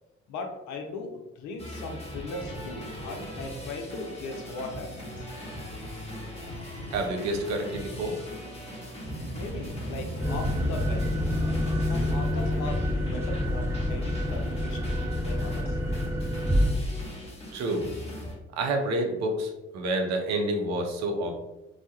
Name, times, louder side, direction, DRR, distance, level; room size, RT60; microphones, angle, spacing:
voice 1, 0.3-5.3 9.3-11.1 11.9-14.8 15.2-15.8, left 2 dB, 65° left, 3 dB, 0.5 m, -38 dB
sound 1, 1.6-18.4, left 1 dB, 20° left, 0.9 m, -40 dB
voice 2, 6.9-8.2 17.5-17.9 18.6-21.3, right 1 dB, 60° right, 3 dB, 0.5 m, -28 dB
sound 2, 9.0-14.0, equal, 30° right, 1.1 m, -36 dB
Commercial Aircraft Pre-Flight Instructions, 10.2-16.7, left 1 dB, 10° right, 0.7 m, -28 dB
2.2 x 2.0 x 2.8 m, 0.97 s
hypercardioid pair, 40°, 31 cm